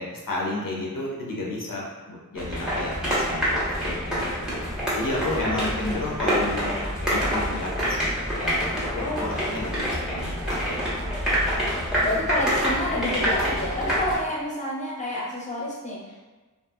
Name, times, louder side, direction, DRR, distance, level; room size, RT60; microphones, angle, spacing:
voice 1, 0.0-4.5 5.0-10.9, left 2 dB, 75° left, -3 dB, 0.6 m, -32 dB
sound 1, 2.4-14.2, equal, ahead, 1.0 m, -26 dB
voice 2, 9.0-9.6 12.0-16.2, left 1 dB, 20° left, -4 dB, 0.8 m, -29 dB
2.6 x 2.6 x 2.3 m, 1.2 s
wide cardioid pair, 45°, 33 cm